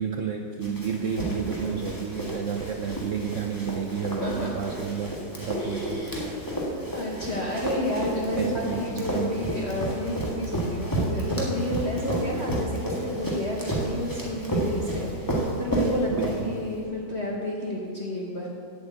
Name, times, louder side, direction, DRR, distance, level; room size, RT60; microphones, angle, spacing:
voice 1, 0.0-6.3 8.3-9.4 16.1-16.5, right 7 dB, 85° right, 5 dB, 0.6 m, -31 dB
Run, 0.6-16.8, right 1 dB, 10° left, 1.6 m, -31 dB
voice 2, 4.2-4.6 5.5-6.3 6.6-18.5, left 1 dB, 40° left, -3 dB, 1.2 m, -31 dB
8.6 x 8.1 x 7.9 m, 2.4 s
omnidirectional pair, 2.0 m